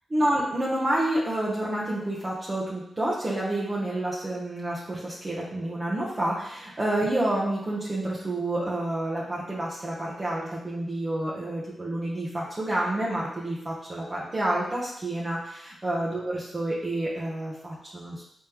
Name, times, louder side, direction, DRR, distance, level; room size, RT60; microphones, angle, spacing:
voice 1, 0.1-18.2, right 1 dB, 40° right, -6 dB, 0.9 m, -29 dB
3.6 x 3.2 x 3.0 m, 0.77 s
cardioid pair, 45°, 0 cm